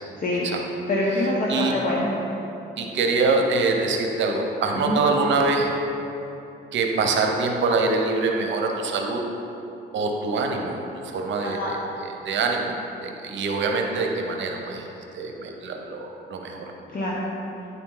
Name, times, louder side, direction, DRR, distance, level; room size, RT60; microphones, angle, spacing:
voice 1, 0.9-2.1 4.8-4.9 11.4-11.7 16.9-17.2, left 1 dB, 45° left, -5 dB, 1.0 m, -25 dB
voice 2, 2.8-5.7 6.7-9.2 9.9-12.7 13.0-14.9 15.1-16.7, right 3 dB, 70° right, 2 dB, 0.8 m, -24 dB
9.5 x 4.2 x 3.9 m, 2.9 s
cardioid pair, 90°, 20 cm